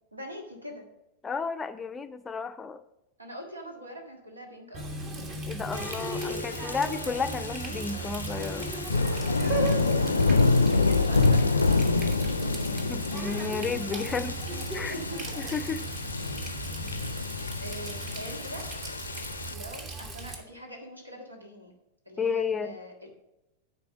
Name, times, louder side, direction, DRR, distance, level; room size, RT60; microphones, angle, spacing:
voice 1, 0.1-0.9 3.2-4.9 10.0-13.0 14.8-15.5 17.4-18.7 19.5-21.7 22.0-23.2, equal, 80° right, 2 dB, 1.7 m, -42 dB
voice 2, 1.2-2.8 5.5-8.7 12.8-14.3 14.7-15.0 15.4-15.8 22.2-22.7, left 5 dB, 15° left, 10 dB, 0.4 m, -32 dB
Water tap faucet, 4.7-20.4, right 3 dB, 35° right, 1.4 m, -37 dB
sound 1, 5.7-19.5, left 3 dB, 80° left, 0.4 m, -28 dB
10.5 x 4.5 x 6.1 m, 0.92 s
figure-of-eight pair, 90°, 0 cm